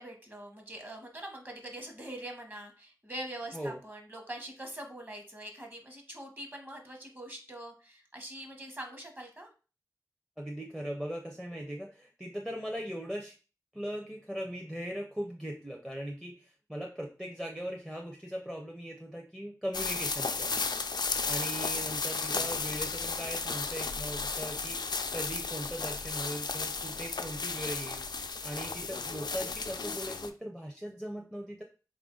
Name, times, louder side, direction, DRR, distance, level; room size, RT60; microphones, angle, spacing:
voice 1, 0.0-9.5, right 1 dB, 25° right, 3 dB, 1.0 m, -43 dB
voice 2, 10.4-13.4 13.7-20.5 21.2-24.9 25.1-28.0 28.4-31.6, equal, 5° right, 0 dB, 0.5 m, -39 dB
sound 1, 19.7-30.3, left 4 dB, 80° left, 0.3 m, -34 dB
3.7 x 2.5 x 3.7 m, 0.35 s
wide cardioid pair, 65°, 7 cm